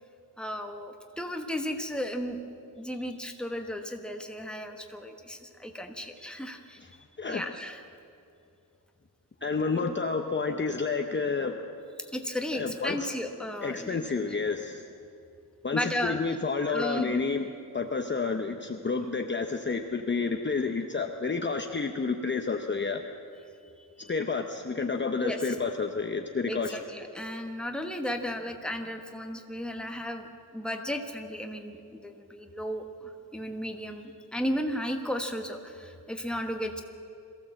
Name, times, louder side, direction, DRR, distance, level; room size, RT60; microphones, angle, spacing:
voice 1, 0.4-6.8 7.3-7.9 9.7-9.9 12.0-14.0 15.7-16.4 16.7-17.2 23.8-24.1 25.2-25.5 26.5-30.3 30.5-36.8, equal, ahead, 4 dB, 1.3 m, -35 dB
voice 2, 9.4-11.6 12.5-13.1 13.6-14.8 15.6-17.5 17.7-23.0 24.1-26.8, left 4 dB, 30° left, 4 dB, 0.8 m, -30 dB
22.5 x 15.5 x 7.6 m, 2.6 s
wide cardioid pair, 170°, 39 cm